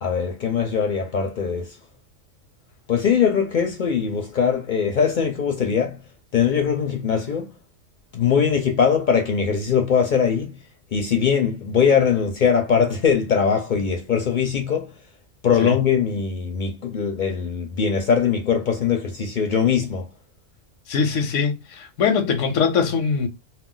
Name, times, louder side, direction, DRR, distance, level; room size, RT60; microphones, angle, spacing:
voice 1, 0.0-1.8 2.9-6.0 6.3-7.5 8.1-10.6 10.9-14.9 15.4-20.1, left 7 dB, 55° left, 0.6 m, -21 dB
voice 2, 20.9-23.3, left 6 dB, 85° left, 1.0 m, -22 dB
2.3 x 2.2 x 3.7 m
omnidirectional pair, 1.3 m